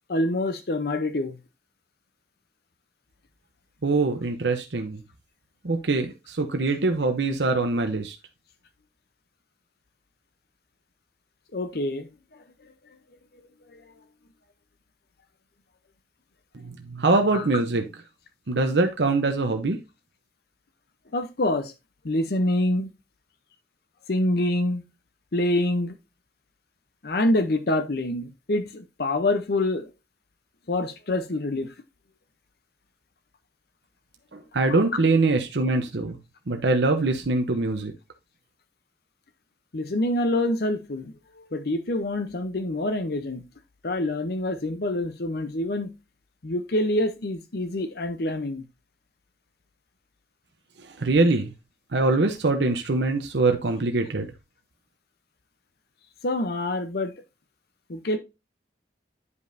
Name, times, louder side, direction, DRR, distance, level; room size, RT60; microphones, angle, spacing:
voice 1, 0.1-1.4 11.5-12.1 13.7-13.8 17.3-17.4 21.1-21.7 22.0-22.9 24.1-24.8 25.3-25.9 27.0-29.9 30.7-31.7 34.7-34.8 39.7-41.1 41.5-43.4 43.8-45.9 46.4-48.6 56.2-57.1 57.9-58.2, left 1 dB, 60° left, 0.7 m, -26 dB
voice 2, 3.8-5.0 5.6-8.2 16.6-17.8 18.5-19.8 34.3-36.2 36.5-37.9 51.0-51.5 51.9-54.3, right 3 dB, 70° right, 0.8 m, -23 dB
9.6 x 5.2 x 2.6 m
head